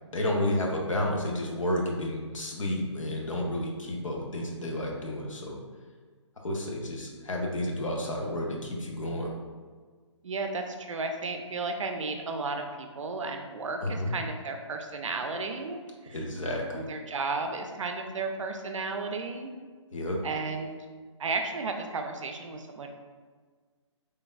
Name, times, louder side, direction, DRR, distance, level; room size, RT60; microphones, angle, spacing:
voice 1, 0.1-5.6 6.4-9.3 13.8-14.1 16.1-16.9 19.9-20.2, left 1 dB, 90° left, -1 dB, 0.7 m, -31 dB
voice 2, 10.2-16.3 16.7-19.5 20.2-20.9 21.2-22.9, right 3 dB, 80° right, 5 dB, 0.4 m, -34 dB
3.3 x 2.2 x 2.4 m, 1.5 s
hypercardioid pair, 150°, 16 cm